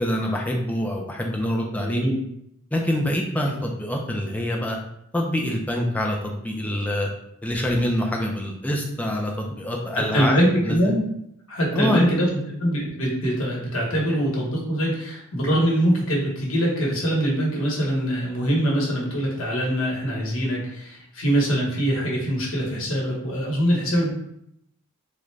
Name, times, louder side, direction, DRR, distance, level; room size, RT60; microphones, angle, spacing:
voice 1, 0.0-2.0 2.7-4.8 5.1-7.1 7.4-10.8 11.7-12.4, left 1 dB, 5° left, 0 dB, 0.4 m, -25 dB
voice 2, 1.8-2.2 10.1-11.1 11.5-12.3 12.6-24.1, equal, 70° left, -3 dB, 1.0 m, -23 dB
3.7 x 2.2 x 3.2 m, 0.75 s
head